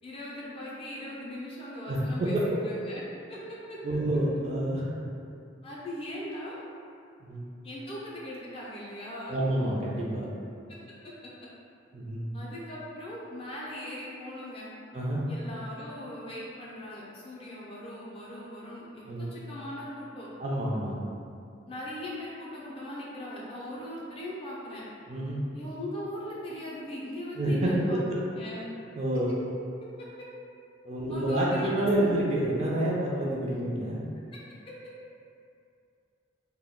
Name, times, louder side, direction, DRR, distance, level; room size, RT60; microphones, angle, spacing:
voice 1, 0.0-2.4 2.6-3.0 3.3-3.8 5.6-6.6 7.6-9.4 12.3-14.7 15.3-20.3 21.7-24.9 25.5-28.0 28.3-28.7 30.2-30.3 31.1-32.2, left 1 dB, 30° left, -6 dB, 0.4 m, -39 dB
voice 2, 1.9-2.4 3.8-4.9 7.2-7.5 9.3-10.3 11.9-12.3 14.9-15.3 19.0-19.3 20.4-21.0 25.1-25.4 27.4-27.7 29.0-29.3 30.8-34.0, right 1 dB, 35° right, -4 dB, 0.4 m, -28 dB
2.2 x 2.1 x 3.5 m, 2.5 s
head